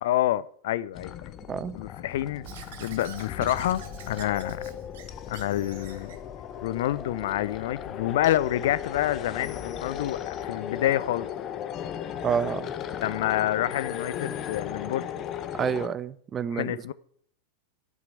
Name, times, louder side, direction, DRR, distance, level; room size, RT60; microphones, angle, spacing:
voice 1, 0.0-1.3 1.7-2.5 2.8-4.6 5.3-6.2 6.6-11.3 13.0-15.0 16.5-16.9, left 13 dB, 55° left, 0.4 m, -28 dB
sound 1, 0.9-15.9, left 9 dB, 30° left, 0.8 m, -36 dB
Squeak / Writing, 2.4-6.2, right 8 dB, 55° right, 1.4 m, -45 dB
voice 2, 12.2-12.7 15.5-16.9, right 7 dB, 25° right, 0.5 m, -29 dB
11.0 x 5.9 x 8.0 m
figure-of-eight pair, 90°, 0 cm